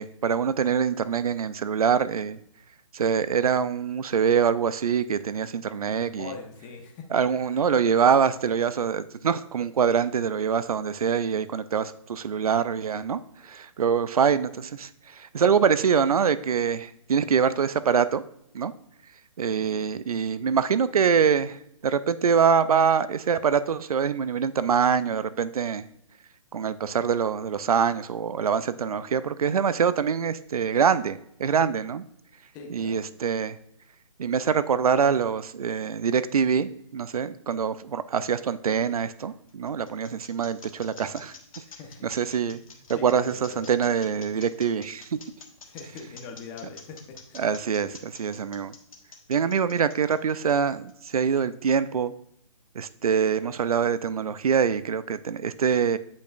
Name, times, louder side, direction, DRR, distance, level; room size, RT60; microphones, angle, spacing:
voice 1, 0.0-2.4 2.9-6.3 7.1-18.2 18.5-18.7 19.4-21.6 21.8-25.8 26.5-32.0 32.7-33.6 34.2-41.3 42.0-42.6 42.9-45.2 47.4-48.7 49.3-52.1 52.8-56.0, right 7 dB, 90° right, 14 dB, 0.4 m, -24 dB
voice 2, 6.0-7.0 19.6-20.0 32.5-33.0 41.8-42.1 42.5-43.7 45.6-47.5, left 5 dB, 20° left, 3 dB, 0.9 m, -42 dB
sound 1, 39.3-51.1, left 5 dB, 70° left, 1.4 m, -47 dB
9.0 x 5.2 x 2.5 m, 0.72 s
hypercardioid pair, 150°, 18 cm